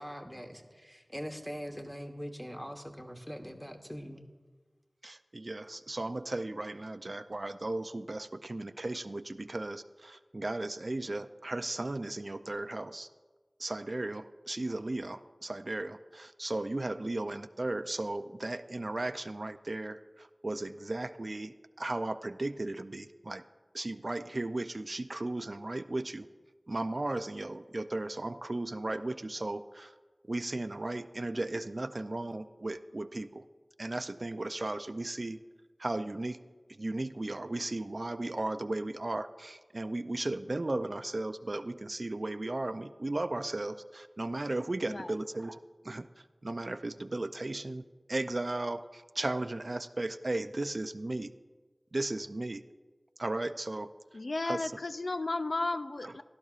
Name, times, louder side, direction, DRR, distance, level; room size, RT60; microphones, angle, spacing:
voice 1, 0.0-4.2, equal, 5° left, 4 dB, 1.2 m, -42 dB
voice 2, 5.0-13.1 13.6-23.4 23.7-26.3 26.7-29.9 30.3-33.4 33.8-35.4 35.8-36.4 36.7-45.6 45.8-46.1 46.4-47.8 48.1-51.3 51.9-52.6 53.2-53.9 54.5-54.6, right 2 dB, 55° right, 11 dB, 0.4 m, -35 dB
voice 3, 44.8-45.1 54.1-56.2, left 2 dB, 75° left, 11 dB, 0.3 m, -34 dB
16.5 x 12.0 x 2.4 m, 1.4 s
wide cardioid pair, 50°, 0 cm